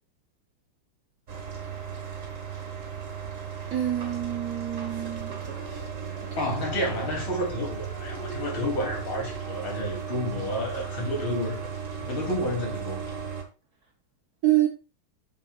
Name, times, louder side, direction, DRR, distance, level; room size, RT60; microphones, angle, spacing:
sound 1, 1.3-13.4, right 6 dB, 40° right, 1.6 m, -36 dB
voice 1, 3.7-5.4 14.4-14.7, right 14 dB, 55° right, 1.1 m, -26 dB
voice 2, 6.4-11.7 12.0-13.1, left 1 dB, 70° left, 4.0 m, -30 dB
8.9 x 7.8 x 2.4 m
omnidirectional pair, 2.4 m